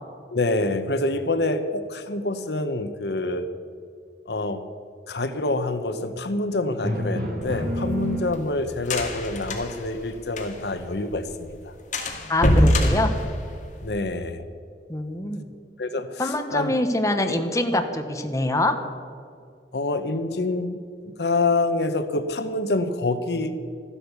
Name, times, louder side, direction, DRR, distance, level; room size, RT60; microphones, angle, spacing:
voice 1, 0.3-3.5 4.3-4.6 5.1-11.7 13.8-14.4 15.8-16.7 19.7-20.8 21.0-23.5, left 2 dB, 65° left, 10 dB, 0.9 m, -26 dB
Drum, 6.8-8.9, equal, 55° right, 2.3 m, -29 dB
sound 1, 7.4-10.8 11.1-11.2 11.5-11.6 11.9-14.0, left 1 dB, 45° left, 2.1 m, -24 dB
voice 2, 12.3-13.1 14.9-15.5 16.2-18.7, left 1 dB, 20° left, 6 dB, 1.1 m, -24 dB
14.0 x 12.5 x 6.9 m, 2.2 s
head